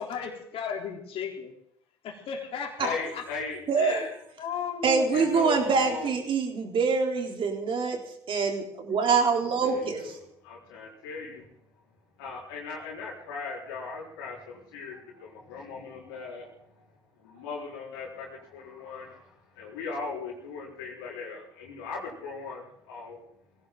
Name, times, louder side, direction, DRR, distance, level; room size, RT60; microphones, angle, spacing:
voice 1, 0.0-1.5 2.0-3.2 3.8-5.5, left 7 dB, 55° left, 1 dB, 3.8 m, -35 dB
voice 2, 2.8-3.6 5.1-6.2 9.6-11.5 12.2-16.8 17.2-23.2, left 4 dB, 75° left, -4 dB, 4.3 m, -38 dB
voice 3, 3.7-4.0 4.8-8.0 8.3-10.2, right 5 dB, 50° right, 2 dB, 3.7 m, -25 dB
21.0 x 16.5 x 3.9 m, 0.72 s
hypercardioid pair, 60°, 12 cm